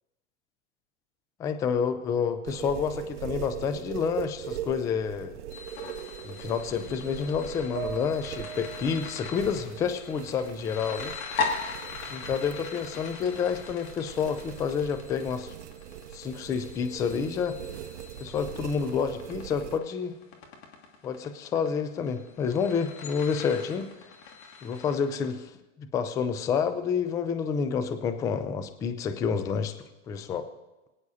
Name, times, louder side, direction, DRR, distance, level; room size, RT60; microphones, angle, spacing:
voice 1, 1.4-5.4 6.2-11.1 12.1-15.5 16.1-17.6 18.2-20.2 21.0-23.9 24.6-25.5 25.8-29.7 30.1-30.5, left 6 dB, 10° left, 10 dB, 0.3 m, -29 dB
sound 1, 2.5-19.8, right 11 dB, 70° right, 0.6 m, -41 dB
sound 2, 5.5-25.3, left 4 dB, 40° left, 2.2 m, -40 dB
sound 3, 7.7-11.2 11.5-12.6, right 8 dB, 50° right, 1.4 m, -44 dB
22.5 x 9.6 x 2.7 m, 1.1 s
hypercardioid pair, 120°, 37 cm